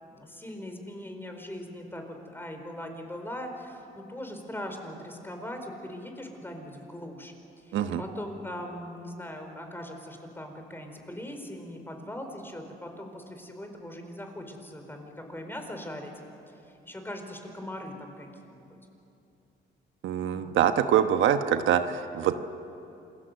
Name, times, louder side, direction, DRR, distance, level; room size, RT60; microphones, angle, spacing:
voice 1, 0.1-7.3 7.6-16.1 16.5-16.6 16.8-18.7 20.3-20.5, left 1 dB, 10° left, 4 dB, 4.7 m, -40 dB
voice 2, 20.0-22.3, right 9 dB, 80° right, 8 dB, 1.1 m, -24 dB
28.0 x 20.5 x 8.1 m, 2.7 s
cardioid pair, 90°, 20 cm